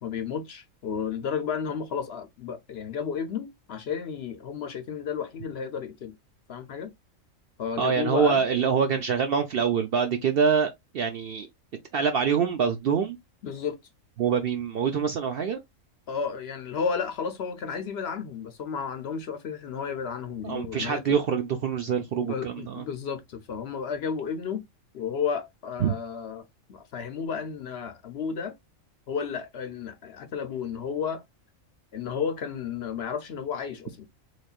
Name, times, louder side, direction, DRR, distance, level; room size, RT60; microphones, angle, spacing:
voice 1, 0.0-6.1 6.5-6.9 7.6-8.4 13.4-13.8 16.1-21.1 22.2-24.6 24.9-26.4 26.7-28.5 29.1-31.2 31.9-34.0, left 6 dB, 60° left, 0.8 m, -32 dB
voice 2, 7.8-11.5 11.9-13.2 14.2-15.6 20.4-22.9 25.8-25.9, right 6 dB, 65° right, 0.6 m, -25 dB
4.1 x 3.3 x 2.3 m
omnidirectional pair, 1.4 m